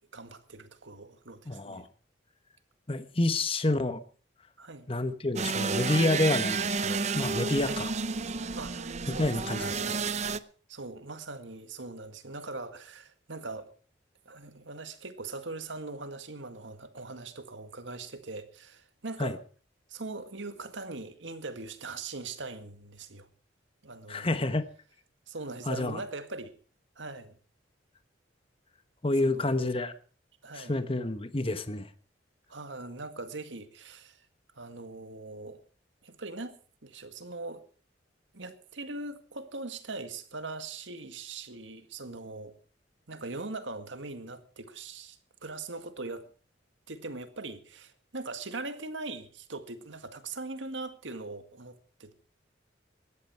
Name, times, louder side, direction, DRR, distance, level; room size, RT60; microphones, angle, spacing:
voice 1, 0.1-1.9 4.6-4.9 7.6-7.9 8.6-9.9 10.7-13.7 14.3-19.4 19.9-23.3 23.8-24.4 25.3-26.5 27.0-27.3 29.2-29.7 30.4-30.8 32.5-34.3 34.6-35.6 36.0-36.6 36.8-37.6 38.3-42.5 43.1-46.3 46.9-52.1, right 3 dB, 85° right, 1.9 m, -41 dB
voice 2, 1.5-1.9 2.9-4.0 4.9-7.9 9.1-9.7 19.2-19.3 24.1-24.6 25.7-26.0 29.0-29.9 30.5-31.9, left 2 dB, 30° left, 1.2 m, -28 dB
sound 1, 5.4-10.4, right 4 dB, 40° right, 0.6 m, -31 dB
19.0 x 13.0 x 4.7 m
head